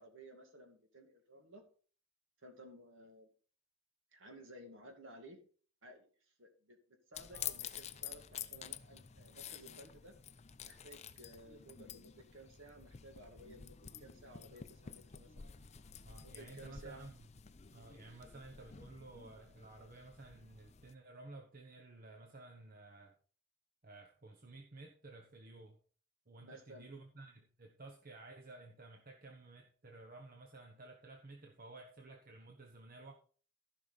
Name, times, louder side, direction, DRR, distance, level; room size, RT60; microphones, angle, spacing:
voice 1, 0.0-1.6 2.4-3.3 4.1-5.4 5.8-6.1 6.4-6.8 7.1-10.1 10.6-15.5 16.1-17.1 26.4-26.9, right 1 dB, 60° right, 2.2 m, -56 dB
sound 1, 7.1-20.9, left 9 dB, 30° left, 0.5 m, -50 dB
voice 2, 7.3-7.6 16.0-17.3 17.7-23.2 23.8-25.8 26.3-33.1, right 2 dB, 40° right, 1.1 m, -54 dB
14.5 x 5.8 x 4.1 m
head